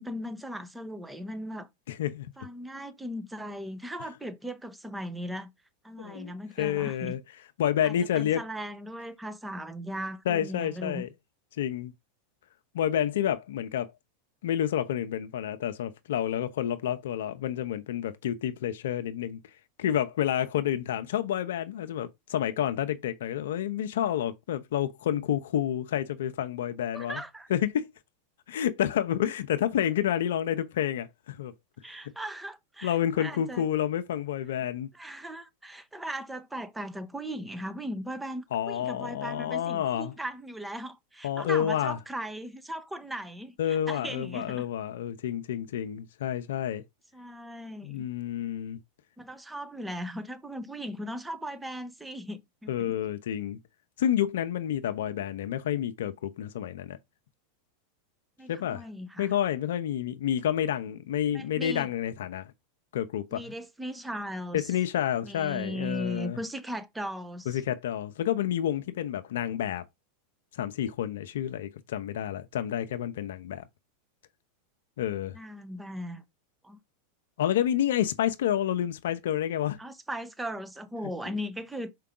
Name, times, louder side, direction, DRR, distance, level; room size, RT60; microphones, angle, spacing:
voice 1, 0.0-1.7 2.4-5.5 5.8-7.1 7.8-11.0 26.9-27.5 31.8-33.7 34.9-44.6 47.1-48.1 49.2-52.9 58.4-59.3 61.3-61.9 63.3-64.7 65.2-67.6 75.3-76.2 76.6-76.8 79.8-81.9, equal, 5° right, 1.1 m, -38 dB
voice 2, 1.9-2.3 6.0-6.3 6.6-7.2 7.6-8.4 10.3-11.1 11.6-11.9 12.7-13.9 14.4-19.4 19.8-27.2 27.5-27.9 28.5-31.5 32.8-34.9 38.5-40.1 41.2-42.0 43.6-46.8 47.8-48.8 52.7-53.6 54.0-57.0 58.5-58.8 59.2-62.5 62.9-63.5 64.5-66.4 67.5-69.8 70.5-73.6 75.0-75.4 77.4-79.8, left 10 dB, 75° left, 0.7 m, -29 dB
5.6 x 4.7 x 3.8 m
hypercardioid pair, 110°, 0 cm